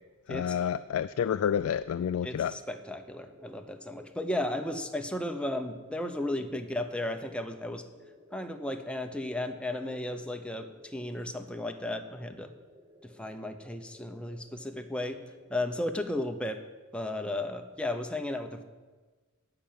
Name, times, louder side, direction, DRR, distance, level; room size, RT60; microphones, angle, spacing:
voice 1, 0.3-2.5, left 8 dB, 85° left, 0.3 m, -29 dB
sound 1, 0.5-16.1, left 1 dB, 20° right, 1.1 m, -56 dB
voice 2, 2.2-7.8 8.3-12.5 13.0-15.2 15.5-16.6 16.9-18.6, left 1 dB, 5° left, 0.8 m, -34 dB
12.0 x 5.8 x 9.2 m
head